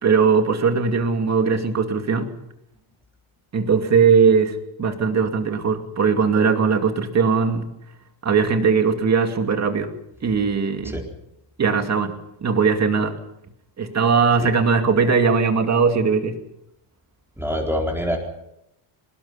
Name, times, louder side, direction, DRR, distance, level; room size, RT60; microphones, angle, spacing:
voice 1, 0.0-2.3 3.5-7.7 8.2-9.9 10.2-11.0 11.6-12.1 12.4-13.1 13.8-16.4, right 5 dB, 30° right, 6 dB, 2.5 m, -19 dB
voice 2, 17.4-18.2, equal, 5° right, 0 dB, 4.1 m, -24 dB
23.5 x 20.0 x 5.7 m, 0.80 s
cardioid pair, 135°, 50 cm